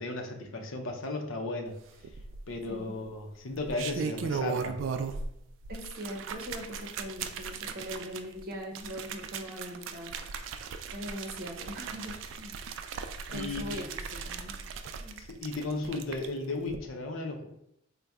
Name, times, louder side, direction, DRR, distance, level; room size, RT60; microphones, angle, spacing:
voice 1, 0.0-1.7 2.5-4.8 13.3-13.6 15.2-17.5, left 2 dB, 75° left, 2 dB, 0.6 m, -35 dB
sound 1, 2.0-2.7 3.5-5.3 5.6-16.3 16.6-16.8, right 5 dB, 70° right, 0.3 m, -37 dB
voice 2, 5.7-10.1 10.9-12.5 13.3-14.5 15.0-15.2, equal, 45° right, 0 dB, 0.7 m, -41 dB
4.1 x 2.2 x 3.5 m, 0.76 s
head